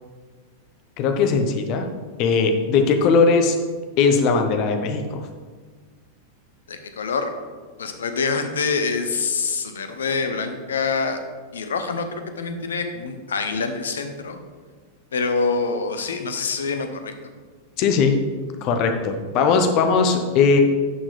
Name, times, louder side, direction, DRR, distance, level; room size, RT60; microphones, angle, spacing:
voice 1, 1.0-1.9 2.2-3.6 4.0-5.2 17.8-18.2 18.6-20.6, left 5 dB, 40° left, 6 dB, 0.9 m, -19 dB
voice 2, 6.7-7.3 7.8-11.2 11.5-14.4 15.1-17.1, left 4 dB, 65° left, 7 dB, 0.8 m, -25 dB
11.0 x 6.1 x 3.3 m, 1.5 s
figure-of-eight pair, 90°, 0 cm